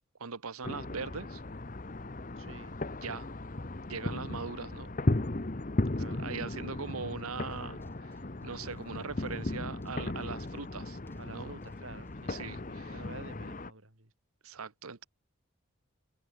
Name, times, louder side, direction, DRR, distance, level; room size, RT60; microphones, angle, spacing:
voice 1, 0.2-1.4 3.0-3.3 3.8-4.9 6.2-11.0 11.3-11.6 12.3-13.0 14.4-15.1, right 5 dB, 85° right, 1.1 m, -41 dB
sound 1, 0.6-13.7, left 2 dB, 35° left, 1.0 m, -36 dB
voice 2, 2.4-2.8 6.0-6.2 11.2-14.1, right 2 dB, 65° right, 5.2 m, -50 dB
sound 2, 7.1-13.5, equal, 10° left, 6.1 m, -58 dB
head